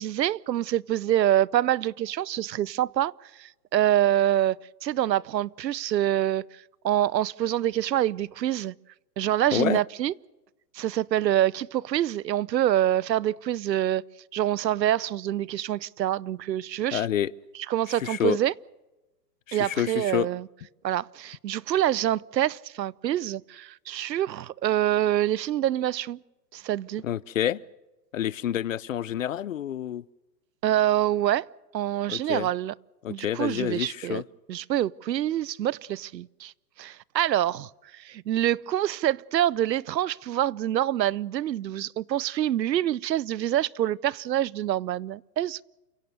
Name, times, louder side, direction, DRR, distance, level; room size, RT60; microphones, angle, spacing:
voice 1, 0.0-8.7 9.2-10.1 10.7-14.0 14.3-17.1 17.7-18.5 19.5-20.5 20.8-26.2 26.5-27.0 30.6-31.5 31.7-32.7 33.1-34.2 34.5-36.5 36.8-45.6, right 12 dB, 85° right, 0.8 m, -26 dB
voice 2, 9.5-9.8 16.9-17.3 18.0-18.4 19.5-20.3 27.0-27.6 28.1-30.0 32.1-32.5 33.0-34.2, left 11 dB, 50° left, 0.6 m, -28 dB
29.5 x 16.5 x 6.6 m
hypercardioid pair, 170°, 49 cm